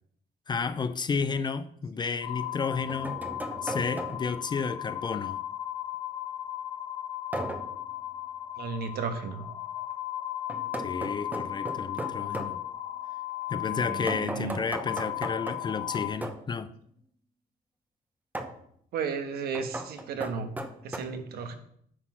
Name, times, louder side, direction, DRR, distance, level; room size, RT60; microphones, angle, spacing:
voice 1, 0.5-3.2 3.6-5.4 10.8-12.6 13.5-16.7, left 5 dB, 25° left, 0.5 m, -32 dB
sound 1, 1.1-1.2 2.4-4.4 7.3-7.8 10.5-12.6 14.1-16.5 18.3-18.6 19.5-21.0, right 1 dB, 10° right, 0.9 m, -37 dB
sound 2, 2.2-16.1, left 13 dB, 65° left, 1.4 m, -36 dB
voice 2, 8.6-9.4 13.7-14.6 18.9-20.5 20.8-21.6, right 5 dB, 70° right, 1.3 m, -34 dB
9.6 x 4.0 x 6.1 m
cardioid pair, 110°, 17 cm